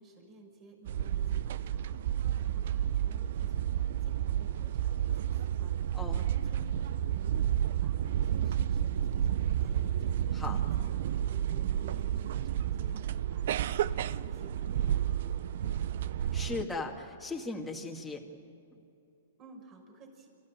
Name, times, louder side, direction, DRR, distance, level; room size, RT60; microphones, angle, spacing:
voice 1, 0.0-15.9 19.4-20.3, right 2 dB, 30° right, 2 dB, 6.3 m, -55 dB
sound 1, 0.9-16.7, right 10 dB, 65° right, 0.6 m, -31 dB
voice 2, 16.3-18.2, left 3 dB, 5° left, -1 dB, 2.2 m, -37 dB
28.0 x 15.0 x 9.1 m, 2.6 s
hypercardioid pair, 135°, 0 cm